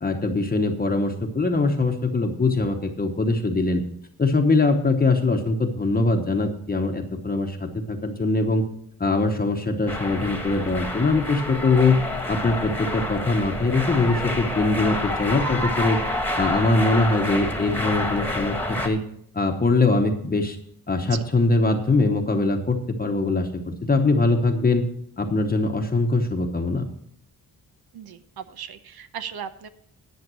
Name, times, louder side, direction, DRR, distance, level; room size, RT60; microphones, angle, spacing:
voice 1, 0.0-3.8 4.2-8.6 9.0-12.0 12.3-16.0 16.4-19.0 19.3-20.6 20.9-24.8 25.2-26.8, left 3 dB, 25° left, 4 dB, 1.0 m, -22 dB
sound 1, 9.9-18.9, left 1 dB, 5° left, 1.4 m, -28 dB
voice 2, 27.9-29.7, right 8 dB, 85° right, 11 dB, 1.0 m, -37 dB
11.0 x 7.2 x 6.2 m, 0.71 s
wide cardioid pair, 130°, 36 cm